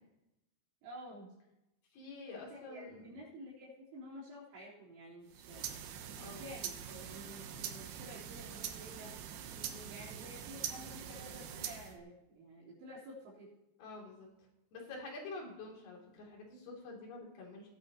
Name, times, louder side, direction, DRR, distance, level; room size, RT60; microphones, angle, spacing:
voice 1, 0.8-1.3 2.3-5.7 6.4-9.2 9.9-13.5, equal, 60° right, -6 dB, 5.3 m, -51 dB
voice 2, 1.9-3.2 6.1-6.4 9.5-9.9 13.8-14.3 14.7-17.7, left 3 dB, 55° left, -2 dB, 4.5 m, -48 dB
sound 1, 5.3-12.0, right 9 dB, 75° right, 2.5 m, -44 dB
18.5 x 9.0 x 3.0 m, 0.89 s
omnidirectional pair, 5.8 m